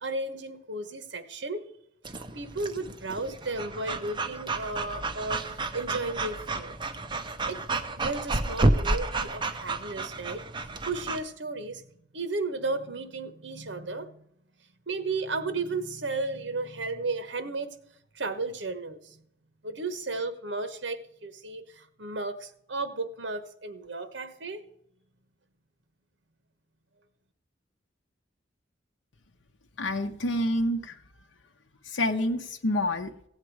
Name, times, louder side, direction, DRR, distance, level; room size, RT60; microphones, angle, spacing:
voice 1, 0.0-1.6 2.3-6.7 7.5-11.9 12.1-14.2 14.9-17.7 18.1-19.2 19.6-24.6, right 3 dB, 70° right, 10 dB, 1.1 m, -34 dB
Breathing / Dog, 2.0-11.2, right 2 dB, 25° right, 0.7 m, -31 dB
voice 2, 29.8-31.0 31.8-33.1, left 1 dB, 80° left, 5 dB, 0.8 m, -28 dB
16.0 x 8.1 x 4.7 m, 0.75 s
head